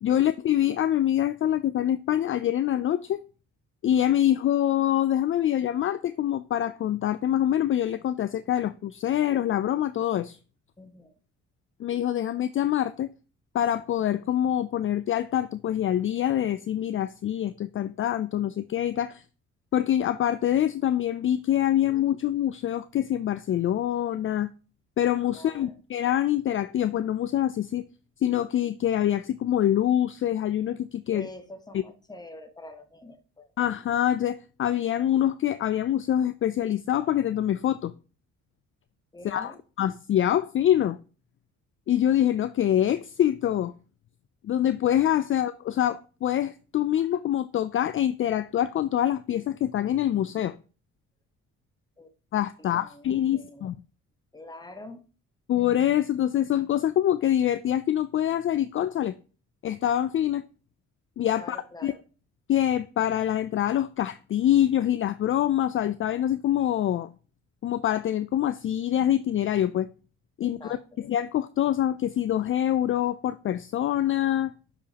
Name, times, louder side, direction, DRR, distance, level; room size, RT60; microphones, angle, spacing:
voice 1, 0.0-3.2 3.8-10.4 11.8-13.1 13.5-19.2 19.7-24.5 25.0-27.8 28.2-31.3 31.7-31.8 33.6-37.9 39.2-39.5 39.8-41.0 41.9-43.7 44.4-50.6 52.3-53.8 55.5-59.1 59.6-60.4 61.2-61.6 61.8-61.9 62.5-67.1 67.6-69.9 70.4-70.6 71.0-74.5, left 11 dB, 45° left, 0.4 m, -25 dB
voice 2, 10.8-11.1 25.3-25.8 31.1-33.5 39.1-39.6 52.0-52.1 52.6-53.7 54.3-55.0 61.3-62.0 70.4-71.0, left 1 dB, 15° left, 1.1 m, -45 dB
7.0 x 5.0 x 2.9 m
cardioid pair, 90°, 30 cm